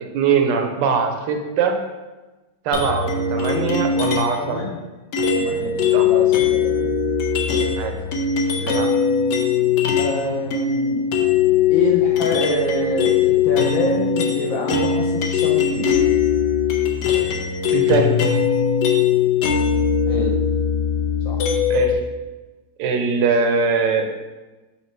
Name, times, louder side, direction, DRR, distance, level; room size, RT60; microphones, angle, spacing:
voice 1, 0.1-1.8 2.6-4.7 5.9-6.1 7.7-7.9 8.6-8.9 17.7-18.1 21.7-22.0 22.8-24.1, right 5 dB, 90° right, 4 dB, 1.3 m, -21 dB
sound 1, 2.7-4.5 5.1-10.2 10.5-21.9, left 7 dB, 80° left, 1.2 m, -20 dB
voice 2, 4.4-4.8 5.3-6.9 9.9-11.1 11.7-15.9 20.1-20.3 21.2-21.4, left 2 dB, 65° left, -1 dB, 1.0 m, -26 dB
4.4 x 2.8 x 4.3 m, 1.2 s
omnidirectional pair, 1.8 m